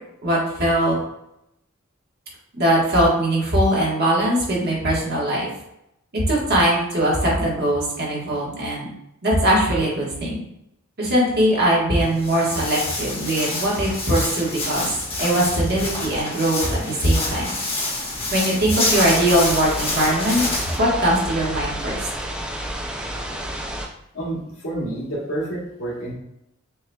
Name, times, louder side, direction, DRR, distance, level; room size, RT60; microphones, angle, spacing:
voice 1, 0.2-1.0 2.6-5.5 6.1-8.9 9.2-10.4 11.0-14.9 15.2-17.5 18.3-20.4 20.8-22.1, right 1 dB, 50° right, -4 dB, 1.4 m, -21 dB
Walk footsteps, 12.0-20.8, left 2 dB, 25° left, 1.2 m, -27 dB
sound 1, 18.8-23.9, right 1 dB, 5° right, 0.4 m, -30 dB
voice 2, 24.1-26.1, right 1 dB, 75° left, -5 dB, 1.5 m, -29 dB
6.0 x 2.8 x 2.3 m, 0.82 s
head